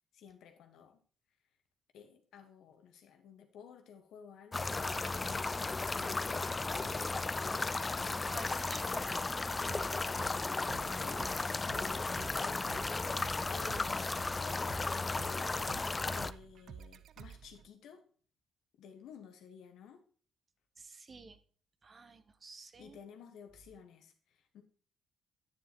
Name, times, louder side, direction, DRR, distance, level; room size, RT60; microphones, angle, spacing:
voice 1, 0.1-1.0 1.9-5.5 5.9-8.2 10.5-12.9 13.5-15.6 16.1-18.0 18.8-20.0 22.8-24.6, left 7 dB, 70° left, 1.2 m, -54 dB
sound 1, 4.5-16.3, left 3 dB, 25° left, 0.3 m, -35 dB
voice 2, 8.3-9.3 20.8-21.4 21.8-23.0, right 4 dB, 40° right, 0.9 m, -51 dB
sound 2, 9.7-17.7, right 7 dB, 65° right, 0.4 m, -51 dB
9.7 x 7.1 x 2.9 m
supercardioid pair, 55°, 0 cm